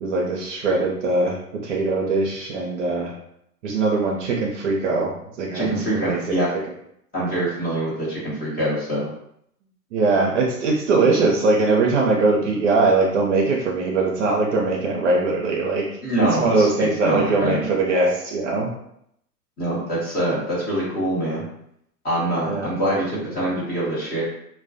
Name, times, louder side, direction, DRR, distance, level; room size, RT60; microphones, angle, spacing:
voice 1, 0.0-1.4 1.6-3.1 3.6-6.2 9.9-15.9 16.4-18.7 22.4-22.7, right 3 dB, 50° right, -1 dB, 0.5 m, -21 dB
voice 2, 5.5-6.5 7.1-9.1 16.0-17.6 19.6-21.4 22.0-24.2, right 1 dB, 20° left, -7 dB, 0.9 m, -24 dB
2.2 x 2.1 x 2.5 m, 0.75 s
figure-of-eight pair, 105°, 48 cm